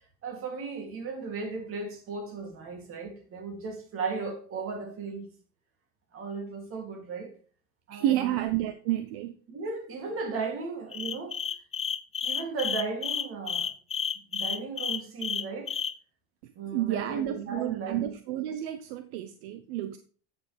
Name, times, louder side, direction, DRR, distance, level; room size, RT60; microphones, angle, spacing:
voice 1, 0.2-5.3 6.1-7.3 7.9-8.3 9.5-11.4 12.2-13.7 14.3-15.8 16.5-18.1, right 4 dB, 45° right, 2.8 m, -36 dB
voice 2, 7.9-9.3 16.4-20.0, right 13 dB, 70° right, 0.8 m, -30 dB
sound 1, 10.9-15.9, left 7 dB, 20° left, 0.5 m, -31 dB
9.3 x 6.8 x 3.3 m
supercardioid pair, 110°, 31 cm